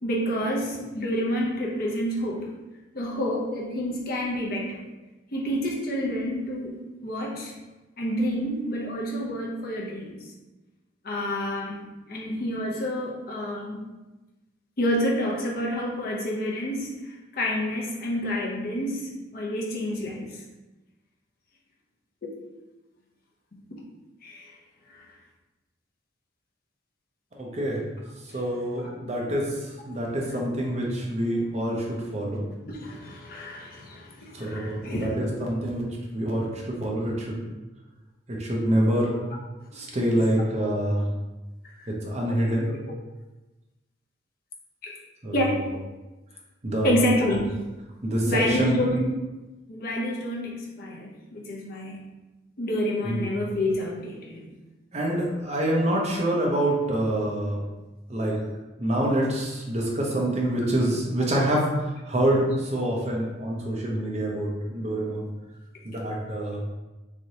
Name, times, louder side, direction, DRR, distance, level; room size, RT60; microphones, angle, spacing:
voice 1, 0.0-2.5 2.9-4.8 5.3-7.5 8.0-10.2 11.0-11.8 12.1-13.8 14.8-20.4 24.2-24.5 24.9-25.0 28.3-28.4 28.8-28.9 32.7-35.1 41.8-41.9 42.7-42.8 44.8-44.9 45.3-45.6 46.8-47.5 48.3-49.1 49.7-52.0 52.6-54.5 61.2-61.3, left 1 dB, 50° left, -2 dB, 0.6 m, -29 dB
voice 2, 27.3-27.8 28.3-32.4 34.3-37.4 38.3-39.2 39.7-41.0 41.9-42.7 45.2-45.4 46.6-47.0 48.0-48.8 53.0-53.2 54.9-57.6 58.1-58.4 58.8-65.3 65.8-66.6, right 1 dB, 35° right, -2 dB, 0.6 m, -26 dB
3.3 x 2.8 x 2.7 m, 1.1 s
head